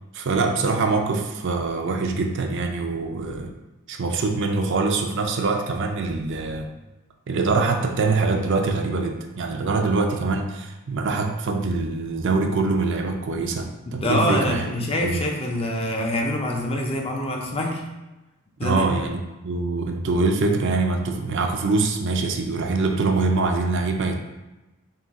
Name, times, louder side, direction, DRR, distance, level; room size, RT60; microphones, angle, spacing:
voice 1, 0.1-3.5 3.9-6.7 7.3-14.6 15.0-15.2 18.6-24.1, right 3 dB, 55° right, 3 dB, 0.4 m, -24 dB
voice 2, 13.9-17.8 18.6-18.9, left 1 dB, 25° left, 1 dB, 0.5 m, -25 dB
3.7 x 2.7 x 4.0 m, 1.0 s
head